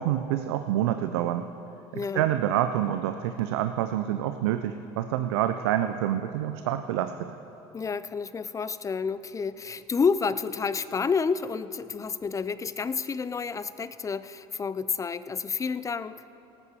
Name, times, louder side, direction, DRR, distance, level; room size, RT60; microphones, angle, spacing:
voice 1, 0.0-1.5 2.1-7.3, right 11 dB, 80° right, 9 dB, 0.5 m, -27 dB
voice 2, 1.9-2.3 7.7-16.2, left 5 dB, 25° left, 15 dB, 0.5 m, -29 dB
18.5 x 8.3 x 4.8 m, 2.9 s
hypercardioid pair, 80°, 14 cm